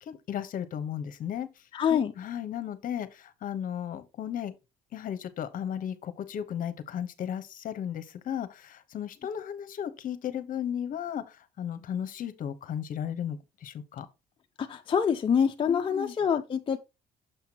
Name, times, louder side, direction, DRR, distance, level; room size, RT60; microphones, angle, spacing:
voice 1, 0.0-1.5 1.9-4.5 4.9-14.1 15.7-16.2, left 9 dB, 55° left, 0.9 m, -35 dB
voice 2, 1.7-2.1 14.6-16.8, left 7 dB, 30° left, 0.6 m, -26 dB
6.7 x 5.7 x 2.8 m
cardioid pair, 110°, 17 cm